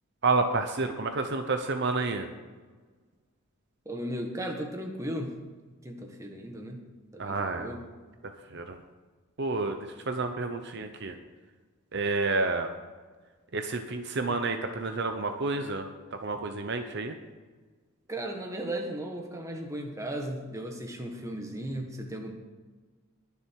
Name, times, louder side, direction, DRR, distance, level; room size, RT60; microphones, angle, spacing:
voice 1, 0.2-2.3 7.2-7.7 8.2-8.8 9.4-9.8 10.1-11.1 11.9-12.7 13.5-17.1, right 3 dB, 55° right, 6 dB, 0.9 m, -30 dB
voice 2, 3.8-5.3 5.8-6.8 7.1-7.8 18.1-22.3, right 1 dB, 15° right, 2 dB, 1.6 m, -36 dB
21.0 x 7.0 x 4.7 m, 1.4 s
head